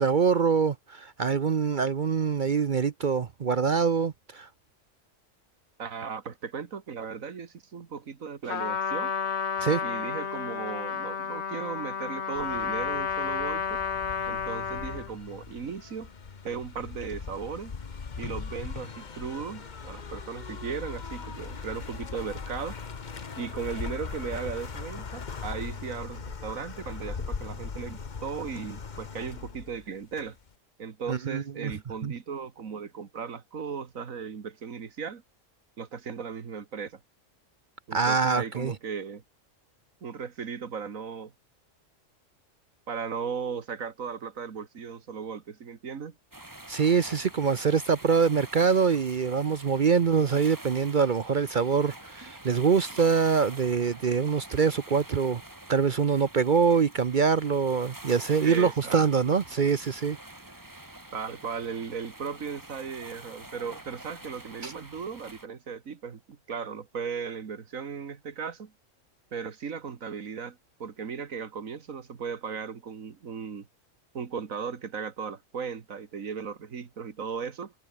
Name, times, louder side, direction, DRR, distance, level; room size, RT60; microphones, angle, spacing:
voice 1, 0.0-4.5 9.6-9.8 31.1-31.7 32.0-32.1 37.9-38.7 46.7-55.4 55.7-60.2 64.6-64.7, right 6 dB, 45° right, 0.7 m, -24 dB
voice 2, 5.8-9.1 9.8-13.8 14.3-16.1 16.4-17.7 18.2-22.8 23.4-30.4 30.8-35.2 35.8-37.0 37.9-39.2 40.0-41.3 42.9-46.2 58.4-59.0 61.1-68.7 69.3-73.7 74.1-77.7, right 6 dB, 85° right, 2.0 m, -36 dB
Trumpet, 8.5-15.1, left 6 dB, 60° left, 1.5 m, -31 dB
sound 1, 12.4-30.5, left 5 dB, 35° left, 1.2 m, -40 dB
sound 2, 46.3-65.5, right 1 dB, 15° right, 2.1 m, -47 dB
omnidirectional pair, 1.4 m